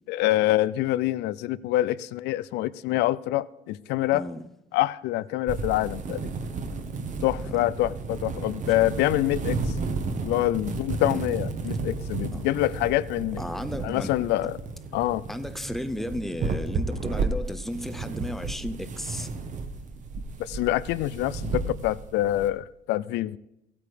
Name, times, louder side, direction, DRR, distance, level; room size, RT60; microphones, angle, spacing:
voice 1, 0.1-4.3 4.7-6.2 7.2-9.6 10.2-13.4 13.8-14.5 14.9-15.2 20.4-23.4, left 15 dB, 85° left, 0.4 m, -26 dB
voice 2, 4.1-4.5 7.4-7.6 10.0-10.2 11.0-11.3 12.3-12.4 13.4-14.1 15.3-19.3, left 1 dB, ahead, 0.7 m, -34 dB
sound 1, 5.5-22.5, right 4 dB, 45° right, 1.3 m, -33 dB
15.0 x 8.6 x 5.0 m
cardioid pair, 110°, 17 cm